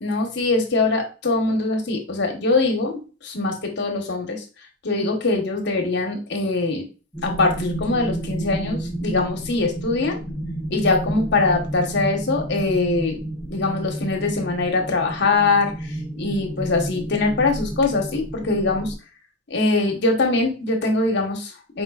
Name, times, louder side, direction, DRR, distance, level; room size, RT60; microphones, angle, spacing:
voice 1, 0.0-4.4 4.8-6.8 7.2-10.2 10.7-13.2 13.5-18.9 19.5-21.8, left 3 dB, 65° left, 2 dB, 1.0 m, -22 dB
Ominous Background, 7.1-18.9, right 1 dB, 5° left, 0.6 m, -31 dB
4.6 x 3.7 x 2.4 m, 0.34 s
head